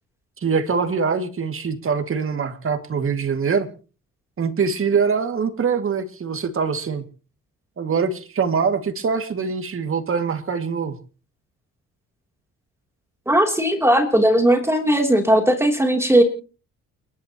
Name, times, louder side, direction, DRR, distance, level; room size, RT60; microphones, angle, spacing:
voice 1, 0.4-3.7 4.4-7.0 7.8-11.0, right 5 dB, 45° right, 7 dB, 2.2 m, -23 dB
voice 2, 13.3-16.2, right 1 dB, 10° right, 3 dB, 3.1 m, -17 dB
30.0 x 11.5 x 3.0 m, 0.36 s
cardioid pair, 90°, 30 cm